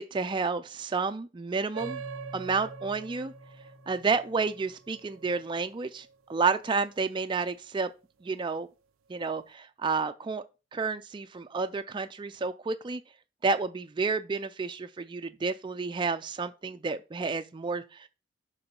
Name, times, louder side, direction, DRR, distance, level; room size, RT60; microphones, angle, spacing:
voice 1, 0.0-2.0 2.3-3.3 3.9-7.9 8.2-8.7 9.1-10.4 10.7-13.0 13.4-18.1, right 4 dB, 25° right, 0.4 m, -30 dB
sound 1, 1.7-6.7, right 7 dB, 85° right, 0.5 m, -45 dB
Keyboard (musical), 1.8-5.5, left 2 dB, 15° left, 1.9 m, -49 dB
7.0 x 3.9 x 5.2 m
head